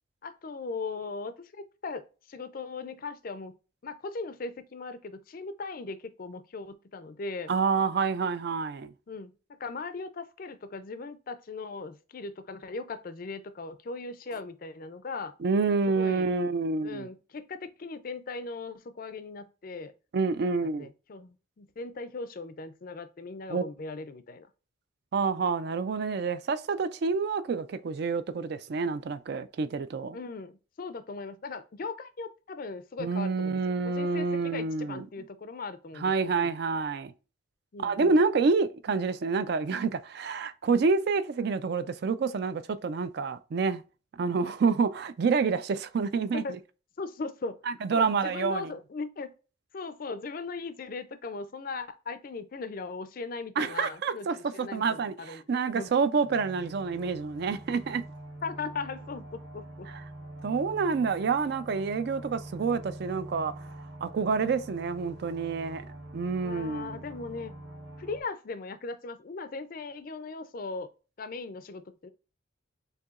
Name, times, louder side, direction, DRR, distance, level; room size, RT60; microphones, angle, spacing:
voice 1, 0.2-2.0 2.3-3.5 3.8-7.5 9.1-9.3 9.6-15.3 15.9-16.3 16.8-19.9 20.6-24.5 30.1-30.5 30.8-33.6 33.8-36.5 37.7-38.1 46.3-46.5 47.0-47.6 47.9-49.3 49.7-55.9 58.4-59.9 66.4-67.5 68.0-70.9 71.2-72.1, left 4 dB, 45° left, 0.4 m, -38 dB
voice 2, 7.5-8.9 15.4-17.1 20.1-20.9 23.5-23.6 25.1-30.2 33.0-35.1 36.0-37.1 37.8-43.8 44.1-46.4 47.7-48.7 53.6-58.0 60.4-63.5 64.0-65.8 66.1-67.0, right 4 dB, 50° right, 0.3 m, -28 dB
sound 1, 56.2-68.2, right 1 dB, 70° right, 0.9 m, -45 dB
6.6 x 2.7 x 2.4 m
head